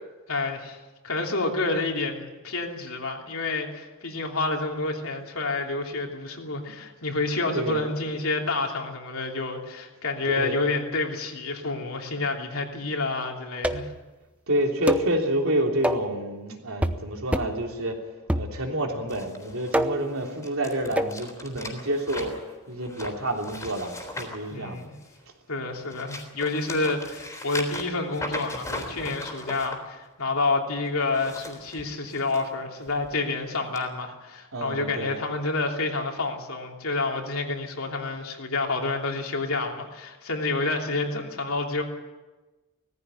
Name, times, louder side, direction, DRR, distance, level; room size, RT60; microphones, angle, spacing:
voice 1, 0.3-0.8 1.0-13.9 24.5-24.9 25.5-41.8, left 3 dB, 75° left, 1 dB, 3.1 m, -29 dB
voice 2, 10.3-10.6 14.5-18.0 18.3-22.4 22.7-24.8 34.5-35.2, right 1 dB, 75° right, 1 dB, 3.4 m, -28 dB
sound 1, 13.6-14.0 14.9-15.1 15.8-16.1 16.8-17.1 17.3-17.6 18.3-18.9 19.7-20.1 21.0-21.2, right 1 dB, 5° right, 0.8 m, -26 dB
sound 2, 19.1-25.2 25.7-29.8 31.0-32.4 32.9-33.1 33.8-33.9, left 1 dB, 15° left, 3.6 m, -38 dB
18.5 x 15.0 x 9.7 m, 1.2 s
head